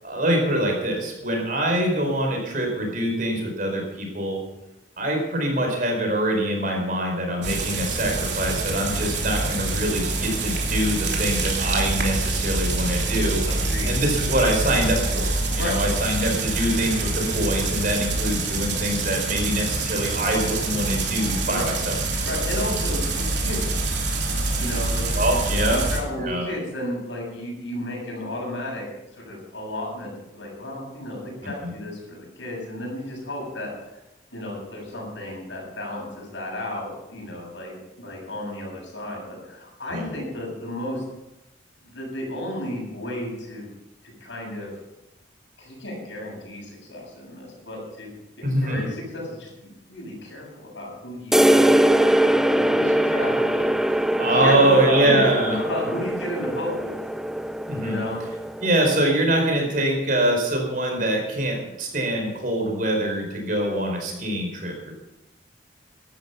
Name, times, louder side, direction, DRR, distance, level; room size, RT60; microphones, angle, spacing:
voice 1, 0.0-4.4 5.0-13.4 13.8-21.9 25.1-25.8 26.2-26.5 31.4-31.7 39.9-40.1 48.4-48.9 54.2-55.6 57.7-58.0 58.6-64.9, right 1 dB, 45° right, 1 dB, 4.7 m, -24 dB
sound 1, 7.4-26.0, right 2 dB, 65° right, 3.3 m, -26 dB
voice 2, 13.5-13.9 15.6-15.8 21.4-21.8 22.2-23.6 24.6-25.4 25.7-28.8 29.1-33.7 34.3-41.0 41.8-43.7 44.0-44.7 45.6-48.1 48.4-55.2 55.6-57.1 57.8-58.2, left 1 dB, 70° left, -1 dB, 7.5 m, -33 dB
sound 2, 51.3-58.8, right 1 dB, ahead, 0.5 m, -22 dB
15.5 x 12.0 x 5.8 m, 0.91 s
head